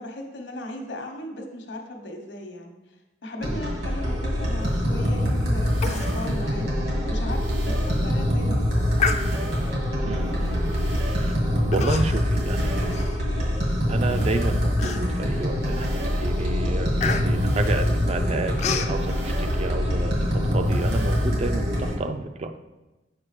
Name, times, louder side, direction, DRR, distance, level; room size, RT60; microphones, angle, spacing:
voice 1, 0.0-2.7 3.2-9.0, left 1 dB, 75° left, 3 dB, 1.0 m, -37 dB
sound 1, 3.4-21.9, equal, 65° right, 1.8 m, -24 dB
voice 2, 3.5-3.8 10.0-11.3 11.7-13.3 13.9-22.6, right 2 dB, 35° right, 7 dB, 0.4 m, -31 dB
sound 2, 4.6-4.8 5.6-6.4 7.3-8.1 9.0-9.8 10.6-11.4 12.3-13.1 14.0-14.8 15.6-16.4 17.3-18.1 19.0-19.8 20.6-21.3, right 3 dB, 90° right, 0.9 m, -41 dB
Human voice, 5.8-6.1 6.5-6.6 7.1-7.2 7.7-8.0 9.0-9.7 10.5-10.7 11.7-12.3 12.7-13.7 14.2-14.3 14.8-15.4 15.8-16.1 16.3-19.0, left 6 dB, 40° left, 0.4 m, -30 dB
7.5 x 5.1 x 3.2 m, 1.1 s
head